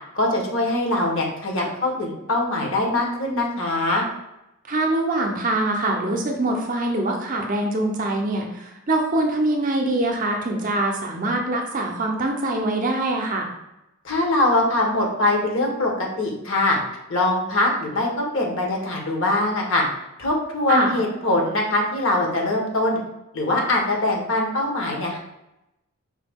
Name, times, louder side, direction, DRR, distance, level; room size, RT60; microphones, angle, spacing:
voice 1, 0.1-4.0 14.0-16.8 17.1-19.8 20.2-23.0 23.3-25.2, left 2 dB, 60° left, 0 dB, 1.0 m, -22 dB
voice 2, 4.7-8.5 8.9-13.5 20.7-20.9, right 2 dB, 40° right, 2 dB, 0.5 m, -23 dB
4.8 x 2.2 x 3.4 m, 0.91 s
head